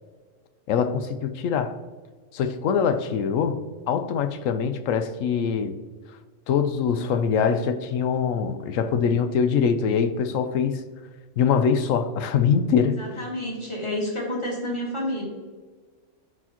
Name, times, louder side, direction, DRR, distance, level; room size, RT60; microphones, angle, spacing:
voice 1, 0.7-1.8 2.3-3.6 3.9-5.7 6.5-10.8 11.4-13.0, left 6 dB, 80° left, 9 dB, 1.0 m, -23 dB
voice 2, 12.8-15.3, left 1 dB, 20° left, -4 dB, 2.1 m, -30 dB
12.5 x 4.5 x 2.9 m, 1.4 s
omnidirectional pair, 1.3 m